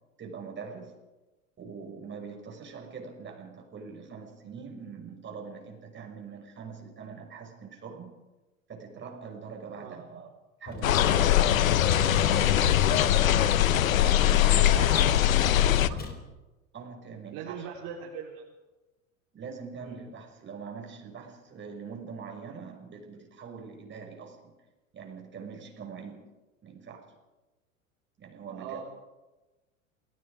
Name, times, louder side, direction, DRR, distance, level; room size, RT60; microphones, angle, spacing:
voice 1, 0.2-0.9 1.6-8.1 8.7-10.3 10.6-12.8 14.2-15.5 16.7-17.7 19.3-24.5 24.9-26.2 26.6-27.1 28.2-28.8, right 5 dB, 30° right, 2 dB, 6.1 m, -43 dB
Vehicle, 10.7-16.1, left 4 dB, 25° left, 4.2 m, -38 dB
sound 1, 10.8-15.9, left 11 dB, 80° left, 1.1 m, -22 dB
voice 2, 14.4-16.0 17.3-18.4 19.8-20.0 28.5-28.8, right 7 dB, 50° right, -2 dB, 3.8 m, -41 dB
28.5 x 19.0 x 5.0 m, 1.1 s
hypercardioid pair, 90°, 40 cm